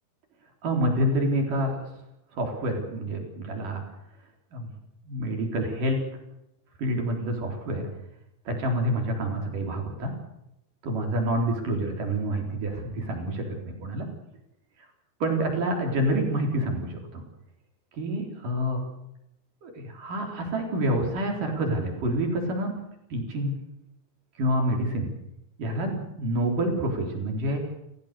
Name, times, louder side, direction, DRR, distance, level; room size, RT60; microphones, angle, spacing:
voice 1, 0.6-1.7 2.3-3.8 4.5-4.7 5.1-6.0 6.8-7.9 8.5-10.1 10.8-14.1 15.2-17.2 18.0-18.8 19.6-22.7 23.1-23.6 24.4-25.1 25.6-27.6, right 1 dB, 50° right, 2 dB, 5.3 m, -27 dB
30.0 x 16.0 x 6.8 m, 0.85 s
omnidirectional pair, 4.9 m